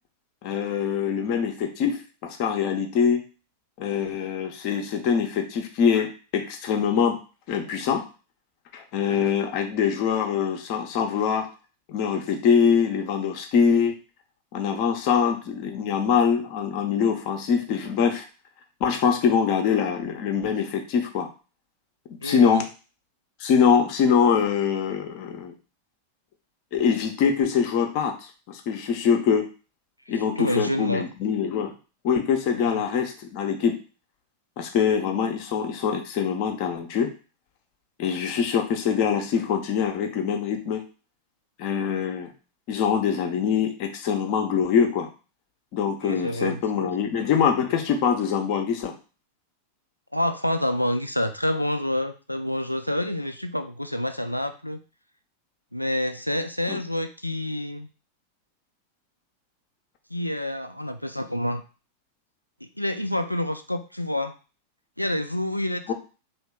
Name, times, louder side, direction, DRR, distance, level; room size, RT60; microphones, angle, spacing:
voice 1, 0.4-3.2 3.8-7.2 7.5-8.0 8.7-11.5 11.9-14.0 14.5-18.2 18.8-21.3 22.2-22.7 23.4-25.5 26.7-28.2 28.5-29.5 30.1-31.7 32.0-33.8 34.6-37.1 38.0-40.8 41.6-42.3 42.7-45.1 45.7-48.9 56.7-56.8 65.9-66.0, left 7 dB, 45° left, 4 dB, 0.6 m, -23 dB
voice 2, 9.0-9.3 22.2-22.6 30.1-31.0 32.6-32.8 46.0-46.9 50.1-54.8 55.7-57.9 60.1-61.6 62.8-64.3 65.0-65.9, left 1 dB, 90° left, 8 dB, 0.3 m, -28 dB
2.9 x 2.5 x 3.5 m, 0.35 s
figure-of-eight pair, 90°, 0 cm